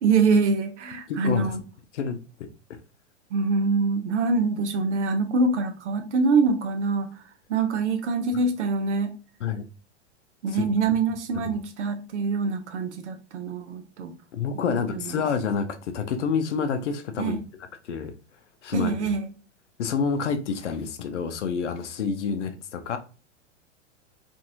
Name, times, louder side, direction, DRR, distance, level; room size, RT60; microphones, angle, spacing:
voice 1, 0.0-1.6 3.3-7.2 7.5-9.1 10.4-14.1 14.7-15.2 17.2-17.4 18.7-19.3, right 4 dB, 70° right, 0.7 m, -25 dB
voice 2, 1.1-1.5 1.9-2.2 9.4-9.6 10.5-10.6 11.4-11.6 14.3-17.4 17.8-18.1 18.6-19.1 19.8-23.0, left 6 dB, 75° left, 0.6 m, -28 dB
2.9 x 2.6 x 2.4 m
hypercardioid pair, 100°, 36 cm